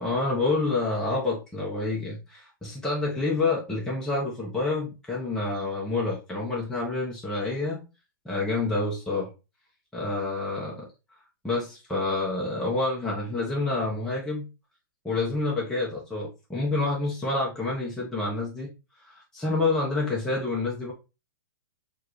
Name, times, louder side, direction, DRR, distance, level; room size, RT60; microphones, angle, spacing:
voice 1, 0.0-7.8 8.2-9.3 9.9-10.9 11.4-14.5 15.0-18.7 19.0-20.9, left 3 dB, 5° left, -5 dB, 0.9 m, -28 dB
4.4 x 2.5 x 3.0 m, 0.28 s
hypercardioid pair, 135°, 12 cm